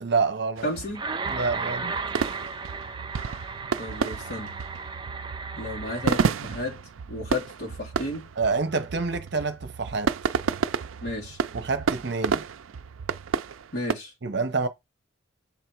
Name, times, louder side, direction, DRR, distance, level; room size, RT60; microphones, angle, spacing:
voice 1, 0.0-0.6 1.2-1.9 8.4-10.1 11.5-12.4 14.2-14.7, right 4 dB, 55° right, 0.8 m, -27 dB
voice 2, 0.6-1.1 3.8-4.6 5.6-6.8 7.1-8.3 11.0-11.4 13.7-14.1, left 1 dB, 50° left, 2.9 m, -33 dB
sound 1, 0.6-13.9, right 6 dB, 85° right, 0.4 m, -31 dB
sound 2, 0.9-6.3, right 4 dB, 20° right, 0.5 m, -35 dB
7.2 x 3.5 x 4.5 m
head